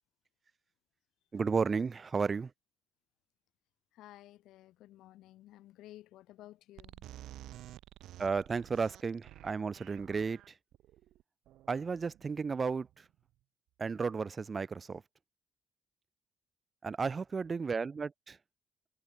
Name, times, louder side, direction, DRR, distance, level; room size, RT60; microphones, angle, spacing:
voice 1, 1.3-2.5 8.2-10.4 11.7-12.9 13.8-15.0 16.8-18.4, right 5 dB, 35° right, 0.3 m, -33 dB
voice 2, 3.9-7.0, left 15 dB, 90° left, 0.5 m, -54 dB
sound 1, 6.8-13.2, right 14 dB, 85° right, 0.7 m, -52 dB
cardioid pair, 90°, 0 cm